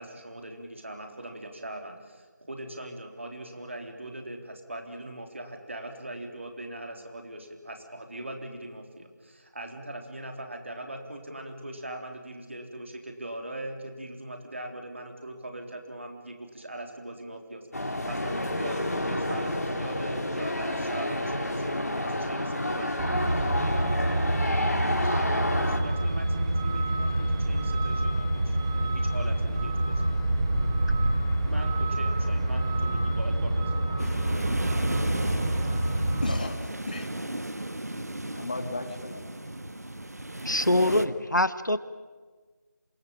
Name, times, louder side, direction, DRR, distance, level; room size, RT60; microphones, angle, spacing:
voice 1, 0.0-23.3 25.1-30.1 31.5-34.1, right 1 dB, 40° right, 4 dB, 3.7 m, -41 dB
sound 1, 17.7-25.8, left 1 dB, 55° left, 4.3 m, -29 dB
Truck, 23.0-36.3, right 1 dB, 15° right, 1.7 m, -27 dB
sound 2, 34.0-41.1, right 1 dB, 60° right, 1.5 m, -35 dB
voice 2, 35.9-36.6 36.9-37.1 38.3-39.3 40.7-41.1, left 2 dB, 25° left, 5 dB, 2.5 m, -36 dB
voice 3, 40.4-41.8, left 1 dB, 80° left, 13 dB, 1.5 m, -24 dB
27.5 x 19.5 x 8.9 m, 1.4 s
figure-of-eight pair, 170°, 10 cm